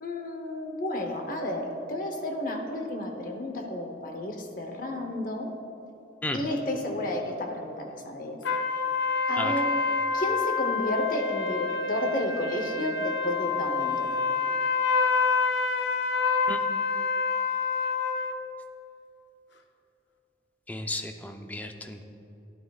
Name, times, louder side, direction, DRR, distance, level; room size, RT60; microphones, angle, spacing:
voice 1, 0.0-5.5 6.3-8.4 9.3-9.7 10.1-14.1, left 1 dB, 45° left, 3 dB, 0.9 m, -31 dB
sound 1, 8.4-18.3, left 5 dB, 70° left, 0.5 m, -27 dB
voice 2, 20.7-22.0, left 1 dB, 10° left, 5 dB, 0.5 m, -34 dB
12.5 x 11.0 x 2.4 m, 3.0 s
head